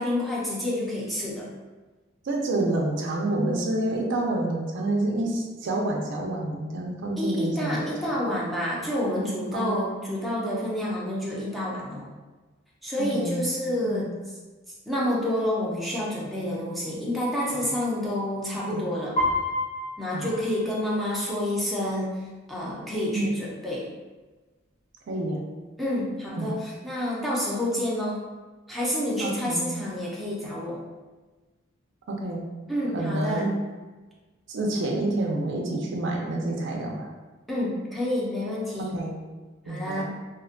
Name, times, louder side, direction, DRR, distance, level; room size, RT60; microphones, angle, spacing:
voice 1, 0.0-1.5 7.2-12.1 12.8-14.1 14.9-19.2 20.0-22.2 22.5-23.9 25.8-28.2 28.7-30.8 32.7-33.5 37.5-39.0 39.7-40.0, left 1 dB, ahead, -7 dB, 0.5 m, -28 dB
voice 2, 2.2-7.8 9.5-9.8 13.0-13.4 13.8-14.1 17.5-17.7 18.7-18.8 20.1-20.4 23.1-23.3 25.1-25.4 26.4-26.5 29.2-29.7 32.1-32.5 32.9-33.5 34.5-37.1 38.8-39.2 39.7-40.0, right 2 dB, 65° right, 0 dB, 0.4 m, -28 dB
Piano, 19.2-21.2, left 1 dB, 35° left, 0.7 m, -29 dB
2.4 x 2.1 x 2.5 m, 1.3 s
head